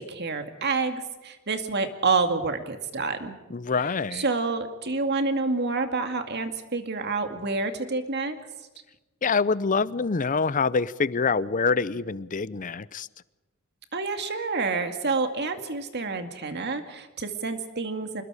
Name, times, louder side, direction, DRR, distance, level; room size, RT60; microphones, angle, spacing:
voice 1, 0.0-3.3 4.1-8.4 13.9-18.2, right 4 dB, 50° right, 2.2 m, -28 dB
voice 2, 3.5-4.3 9.2-13.1, left 4 dB, 40° left, 0.6 m, -25 dB
26.0 x 21.0 x 5.0 m
head